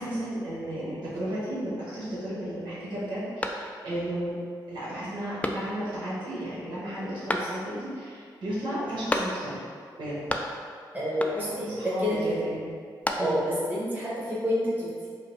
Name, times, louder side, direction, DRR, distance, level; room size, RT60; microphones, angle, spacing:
voice 1, 0.0-4.3 4.7-9.6 10.0-10.2 11.3-12.7 13.2-13.4, right 1 dB, 80° right, -10 dB, 1.4 m, -34 dB
sound 1, 3.4-4.1 4.5-4.6 5.4-6.0 7.3-7.9 9.1-9.7 10.0-10.8 11.2-11.7 12.7-13.6, left 1 dB, 15° left, 0.3 m, -32 dB
voice 2, 10.9-12.3 13.2-15.1, equal, 20° right, -9 dB, 1.3 m, -28 dB
5.0 x 2.3 x 3.0 m, 2.1 s
cardioid pair, 70°, 8 cm